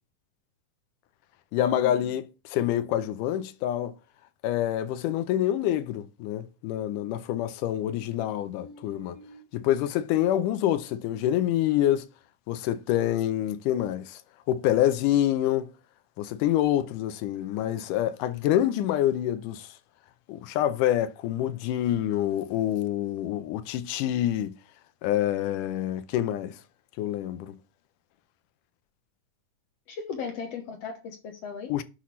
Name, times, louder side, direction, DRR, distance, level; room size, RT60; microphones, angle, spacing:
voice 1, 1.5-3.9 4.4-9.2 9.5-12.1 12.5-14.2 14.5-15.7 16.2-19.7 20.3-24.6 25.0-26.6 27.0-27.6 31.7-31.8, left 12 dB, 90° left, 2.2 m, -26 dB
voice 2, 8.6-9.4 29.9-31.7, left 6 dB, 65° left, 1.8 m, -38 dB
10.0 x 5.8 x 3.1 m
omnidirectional pair, 3.6 m